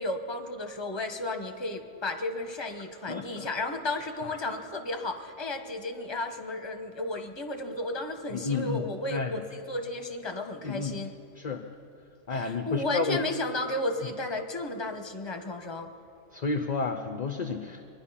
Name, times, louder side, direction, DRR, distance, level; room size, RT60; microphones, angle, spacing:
voice 1, 0.0-11.1 12.3-15.9, left 2 dB, 20° left, 5 dB, 1.0 m, -33 dB
voice 2, 3.1-3.5 8.3-9.4 10.6-11.0 11.4-11.6 12.3-13.2 16.3-17.9, left 4 dB, 40° left, 6 dB, 0.7 m, -31 dB
23.5 x 10.5 x 5.7 m, 2.6 s
omnidirectional pair, 1.3 m